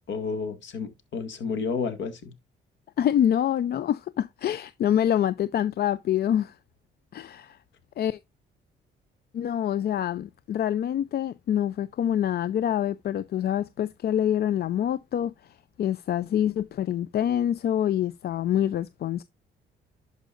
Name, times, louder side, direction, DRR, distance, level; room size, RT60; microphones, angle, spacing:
voice 1, 0.1-2.3, left 5 dB, 70° left, 1.9 m, -31 dB
voice 2, 3.0-6.5 7.1-7.6 8.0-8.2 9.3-15.3 15.8-19.2, left 10 dB, 55° left, 0.4 m, -26 dB
11.0 x 5.2 x 2.5 m
cardioid pair, 90°, 20 cm